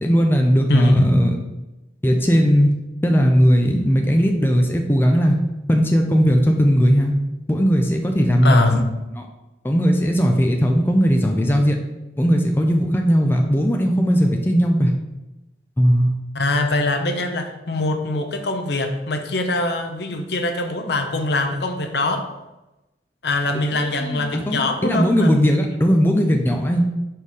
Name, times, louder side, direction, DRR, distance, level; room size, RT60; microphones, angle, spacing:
voice 1, 0.0-1.4 2.0-2.7 3.0-5.4 5.7-7.1 7.5-8.8 9.2-9.3 9.6-11.8 12.2-14.9 15.8-16.1 23.7-26.8, equal, 10° left, 2 dB, 0.5 m, -18 dB
voice 2, 0.7-1.1 8.4-8.8 16.3-22.3 23.2-25.3, left 2 dB, 65° left, 5 dB, 0.7 m, -22 dB
5.3 x 4.4 x 4.8 m, 1.0 s
head